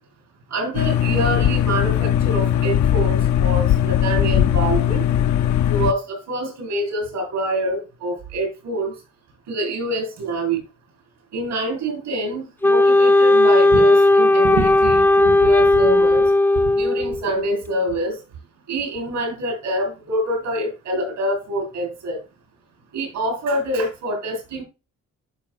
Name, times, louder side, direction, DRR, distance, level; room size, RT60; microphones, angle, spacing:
voice 1, 0.5-5.0 5.7-8.9 9.5-10.6 11.3-16.3 16.7-18.2 18.7-22.2 22.9-24.6, right 1 dB, 85° right, 3 dB, 4.7 m, -25 dB
sound 1, 0.7-5.9, left 10 dB, 70° left, 0.6 m, -19 dB
Wind instrument woodwind instrument, 12.6-17.2, left 2 dB, 5° left, 0.5 m, -15 dB
12.0 x 5.1 x 2.4 m, 0.27 s
cardioid pair, 90°, 30 cm